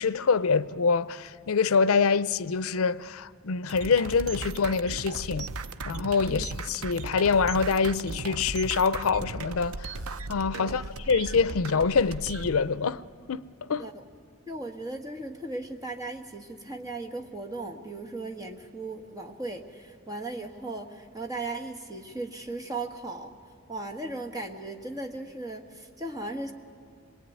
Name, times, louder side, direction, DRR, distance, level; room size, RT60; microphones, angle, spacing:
voice 1, 0.0-5.5 5.8-10.0 10.3-13.0 13.3-13.4 13.7-13.8, left 5 dB, 80° left, 0.5 m, -25 dB
sound 1, 3.7-12.6, right 3 dB, 80° right, 0.7 m, -37 dB
voice 2, 10.6-10.9 13.7-14.0 14.5-23.3 23.7-26.5, right 2 dB, 15° right, 1.5 m, -37 dB
26.5 x 21.5 x 9.3 m
head